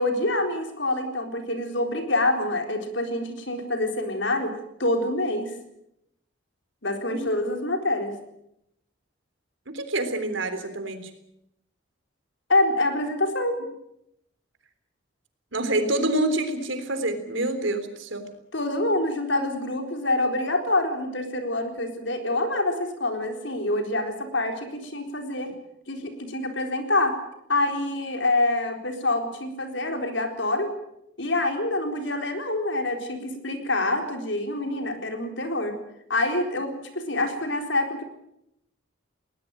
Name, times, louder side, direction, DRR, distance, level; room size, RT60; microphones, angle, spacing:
voice 1, 0.0-4.5 4.8-5.5 6.8-8.1 12.5-13.6 18.5-25.5 25.9-27.2 27.5-30.7 31.2-35.8 36.1-38.0, left 2 dB, 70° left, 5 dB, 4.2 m, -26 dB
voice 2, 9.7-11.0 15.5-18.3, right 1 dB, 75° right, 9 dB, 3.6 m, -27 dB
20.5 x 19.5 x 9.0 m, 0.80 s
head